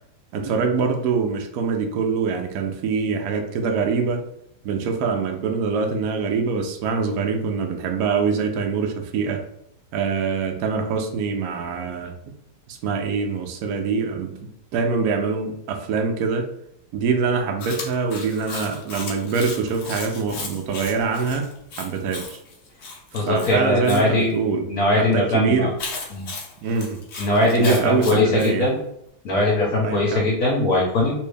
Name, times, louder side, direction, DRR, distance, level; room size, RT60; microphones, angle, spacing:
voice 1, 0.3-4.2 4.6-9.4 9.9-12.2 12.7-16.5 16.9-21.5 21.8-22.4 23.1-24.7 24.9-25.7 26.6-27.0 27.6-28.7 29.8-30.3, right 5 dB, 85° right, 3 dB, 0.8 m, -24 dB
Chewing mastication, 17.6-24.0 25.8-28.5, left 3 dB, 90° left, 0.6 m, -35 dB
voice 2, 23.1-24.3 24.7-25.7 26.1-26.3 27.2-28.8 29.2-31.1, left 2 dB, 60° left, -2 dB, 0.9 m, -20 dB
3.1 x 2.6 x 3.3 m, 0.78 s
omnidirectional pair, 2.2 m